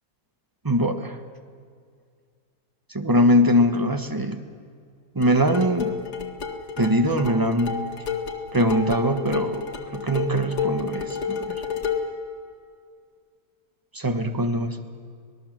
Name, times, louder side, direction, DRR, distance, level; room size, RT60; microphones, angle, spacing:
voice 1, 0.6-1.2 2.9-4.4 5.1-6.0 6.8-7.8 8.5-9.6 9.9-11.6 13.9-14.8, equal, 15° right, 7 dB, 1.3 m, -22 dB
sound 1, 5.2-12.2, left 6 dB, 75° left, 2.4 m, -30 dB
26.5 x 19.0 x 7.6 m, 2.2 s
omnidirectional pair, 1.7 m